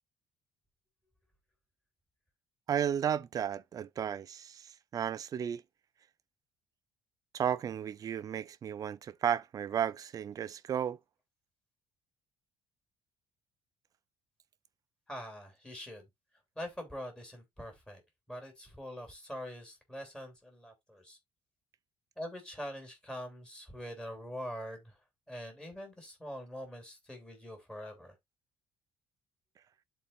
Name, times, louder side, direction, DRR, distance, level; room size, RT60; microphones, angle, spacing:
voice 1, 2.7-5.6 7.3-11.0, right 9 dB, 40° right, 0.6 m, -33 dB
voice 2, 15.1-16.0 16.5-18.0 18.3-21.2 22.2-25.0 25.3-28.1, equal, 10° left, 3.1 m, -44 dB
12.0 x 4.2 x 2.5 m
cardioid pair, 130°, 10 cm